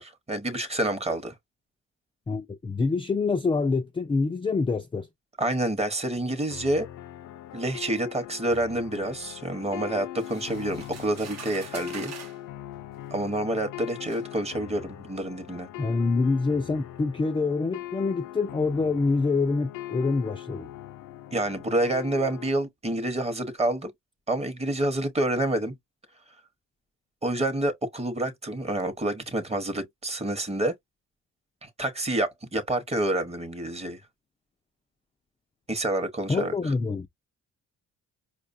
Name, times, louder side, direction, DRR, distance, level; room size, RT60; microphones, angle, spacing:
voice 1, 0.0-1.3 5.4-6.9 7.5-12.1 13.1-15.7 21.3-23.9 24.3-25.7 27.2-30.7 31.6-34.0 35.7-36.5, right 1 dB, 20° right, 0.9 m, -28 dB
voice 2, 2.3-5.1 15.8-20.7 36.3-37.1, left 4 dB, 15° left, 0.4 m, -26 dB
sound 1, 6.5-22.5, left 13 dB, 80° left, 0.6 m, -41 dB
sound 2, 10.2-12.4 13.4-13.5 14.1-14.3, right 6 dB, 60° right, 0.9 m, -44 dB
4.8 x 2.2 x 2.5 m
cardioid pair, 90°, 30 cm